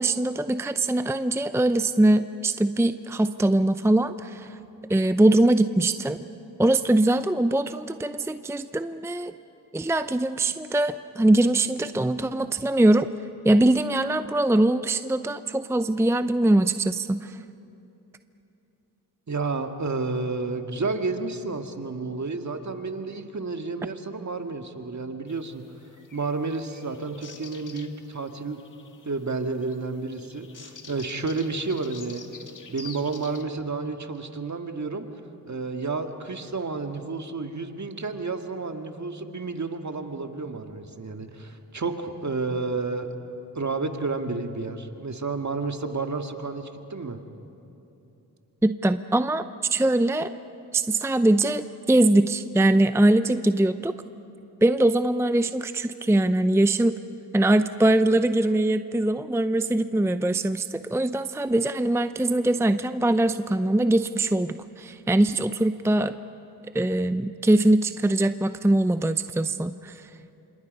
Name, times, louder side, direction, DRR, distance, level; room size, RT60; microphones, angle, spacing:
voice 1, 0.0-4.6 4.9-6.2 6.6-9.3 9.7-13.1 13.4-17.4 48.6-49.5 49.7-50.3 50.7-53.9 54.6-57.0 57.3-66.2 66.7-70.1, right 1 dB, 5° right, 11 dB, 0.6 m, -22 dB
voice 2, 19.3-25.6 26.1-28.6 29.1-32.3 32.7-35.1 35.5-43.1 43.6-47.2, right 3 dB, 45° right, 5 dB, 1.9 m, -31 dB
sound 1, 25.3-33.4, left 5 dB, 50° left, 1.8 m, -48 dB
27.0 x 25.5 x 5.4 m, 2.8 s
cardioid pair, 50°, 39 cm